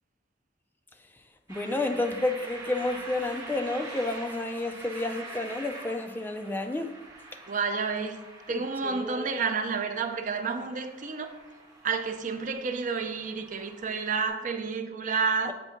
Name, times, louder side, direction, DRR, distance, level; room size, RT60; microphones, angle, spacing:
voice 1, 1.5-6.9 8.5-9.4 15.4-15.5, left 2 dB, 10° left, 0.3 m, -31 dB
sound 1, 1.5-14.3, right 2 dB, 20° right, 1.2 m, -45 dB
voice 2, 7.5-8.2 8.5-11.4 11.8-15.5, right 5 dB, 45° right, 0.5 m, -30 dB
6.9 x 2.7 x 5.6 m
head